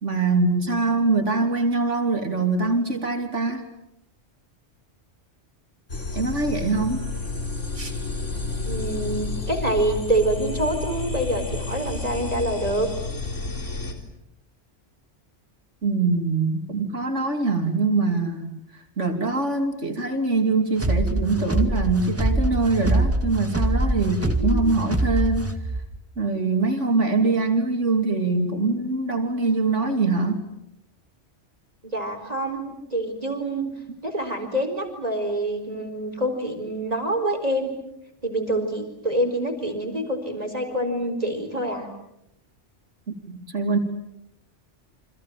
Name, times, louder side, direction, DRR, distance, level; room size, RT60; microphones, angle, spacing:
voice 1, 0.0-3.7 6.1-7.0 7.8-8.0 15.8-18.6 19.0-25.5 26.2-30.4 43.1-43.8, right 3 dB, 80° right, 4 dB, 3.4 m, -23 dB
sound 1, 5.9-13.9, left 3 dB, 85° left, 4.4 m, -30 dB
voice 2, 8.7-12.9 24.4-24.6 31.8-33.7 34.0-37.7 38.2-41.9, right 1 dB, 30° right, 6 dB, 4.5 m, -26 dB
sound 2, 20.8-25.8, right 1 dB, 10° right, 2.1 m, -24 dB
29.5 x 26.0 x 7.6 m, 0.81 s
omnidirectional pair, 1.2 m